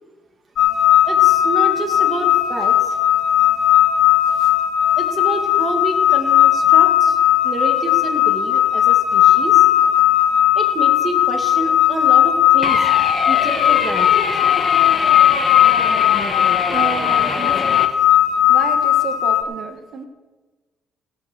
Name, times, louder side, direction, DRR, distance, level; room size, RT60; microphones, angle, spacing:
sound 1, 0.6-19.4, left 11 dB, 65° left, 1.2 m, -16 dB
voice 1, 1.1-2.9 5.0-7.2 7.4-9.7 10.6-12.9 13.3-14.2, right 2 dB, 35° right, 3 dB, 2.1 m, -28 dB
sound 2, 12.6-17.9, left 4 dB, 40° left, 1.3 m, -25 dB
voice 2, 16.7-17.8 18.5-20.0, right 6 dB, 60° right, 5 dB, 1.2 m, -30 dB
16.5 x 6.0 x 6.6 m, 1.3 s
cardioid pair, 90°, 0 cm